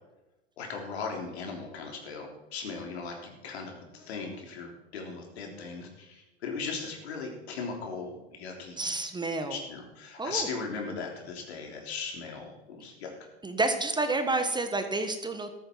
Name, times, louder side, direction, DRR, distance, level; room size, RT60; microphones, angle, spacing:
voice 1, 0.6-8.9 9.5-13.1, left 4 dB, 70° left, 2 dB, 3.6 m, -38 dB
voice 2, 8.8-9.6 10.2-10.5 13.4-15.5, right 2 dB, 15° right, 7 dB, 1.3 m, -29 dB
14.0 x 13.0 x 4.6 m, 1.0 s
hypercardioid pair, 85°, 33 cm